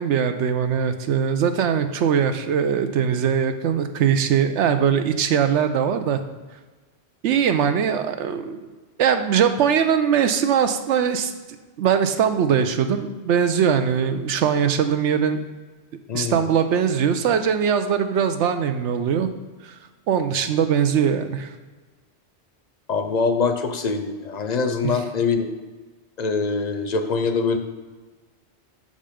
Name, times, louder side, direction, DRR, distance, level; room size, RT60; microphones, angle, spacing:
voice 1, 0.0-6.2 7.2-8.7 9.0-11.3 11.8-15.4 16.1-19.3 19.6-19.7 20.1-21.5 24.8-24.9, right 7 dB, 85° right, 8 dB, 0.9 m, -21 dB
voice 2, 16.1-16.4 22.9-25.4 26.2-27.6, left 4 dB, 50° left, 7 dB, 0.5 m, -23 dB
6.6 x 5.3 x 5.0 m, 1.3 s
omnidirectional pair, 1.2 m